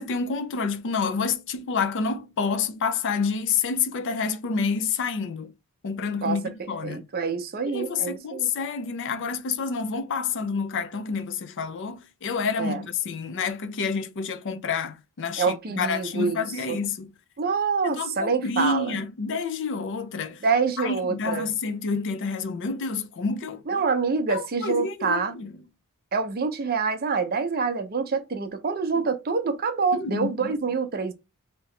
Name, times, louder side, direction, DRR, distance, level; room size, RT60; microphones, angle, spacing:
voice 1, 0.0-5.5 5.8-7.0 7.7-17.1 17.8-20.4 20.8-23.6 24.3-25.5 29.0-29.1 29.9-30.6, left 5 dB, 55° left, 0.5 m, -28 dB
voice 2, 6.8-8.5 12.6-12.8 15.4-16.8 17.4-19.0 20.4-21.5 23.7-25.3 26.1-31.1, right 5 dB, 40° right, 0.5 m, -26 dB
2.9 x 2.8 x 3.1 m
head